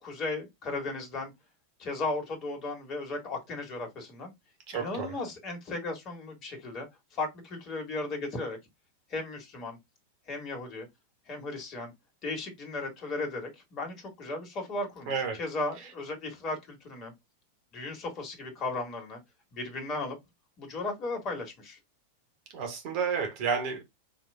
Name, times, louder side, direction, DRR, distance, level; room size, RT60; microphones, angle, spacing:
voice 1, 0.0-1.3 1.8-4.3 4.7-8.6 9.1-9.8 10.3-10.9 11.3-11.9 12.2-17.1 17.7-19.2 19.5-20.2 20.6-21.8, left 2 dB, 30° left, 1.9 m, -36 dB
voice 2, 4.7-5.1 15.1-15.4 22.5-23.8, right 6 dB, 45° right, 1.7 m, -31 dB
5.0 x 3.0 x 3.6 m
figure-of-eight pair, 90°, 0 cm